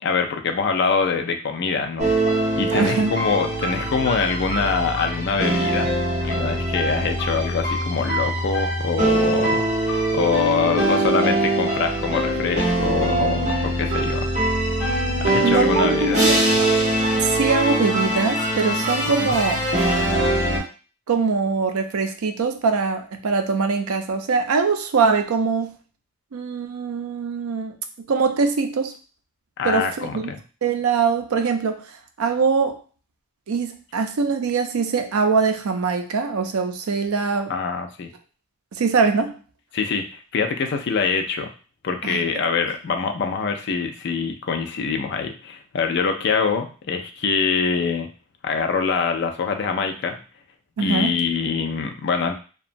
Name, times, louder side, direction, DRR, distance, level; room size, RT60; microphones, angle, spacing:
voice 1, 0.0-2.1 2.6-5.9 6.2-14.3 15.2-16.6 19.2-19.4 29.6-30.4 37.5-38.1 39.7-40.0 40.3-41.5 41.8-48.1 48.4-50.2 50.8-52.4, left 5 dB, 55° left, 5 dB, 0.4 m, -24 dB
sound 1, 2.0-20.6, right 1 dB, 35° right, 1.1 m, -22 dB
voice 2, 2.7-3.1 15.4-16.4 17.2-19.6 21.1-25.8 26.3-28.9 29.6-30.3 30.6-31.8 32.2-32.8 33.5-37.5 38.7-39.4 42.0-42.2 50.8-51.2, right 5 dB, 85° right, 6 dB, 0.4 m, -22 dB
2.8 x 2.2 x 2.5 m, 0.36 s
head